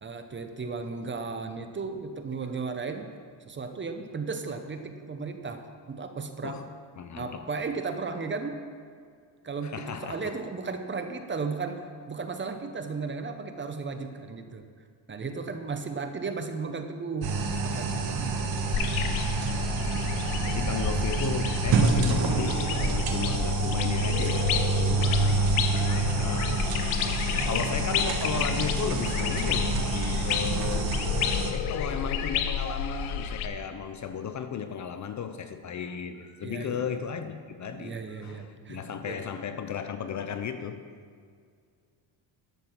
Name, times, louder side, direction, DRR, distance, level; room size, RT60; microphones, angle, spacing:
voice 1, 0.0-3.1 3.5-6.6 7.2-8.7 9.4-14.6 15.1-17.3 17.6-18.5 30.5-30.9 36.4-37.0 37.7-39.2, right 4 dB, 25° right, 7 dB, 0.8 m, -35 dB
voice 2, 7.0-7.4 9.6-10.3 20.4-26.7 27.5-30.9 31.5-40.9, left 7 dB, 40° left, 9 dB, 0.6 m, -35 dB
sound 1, 17.2-31.5, right 4 dB, 50° right, 1.4 m, -28 dB
sound 2, 18.7-33.5, left 7 dB, 90° left, 0.9 m, -30 dB
11.5 x 6.8 x 5.9 m, 2.1 s
cardioid pair, 110°, 48 cm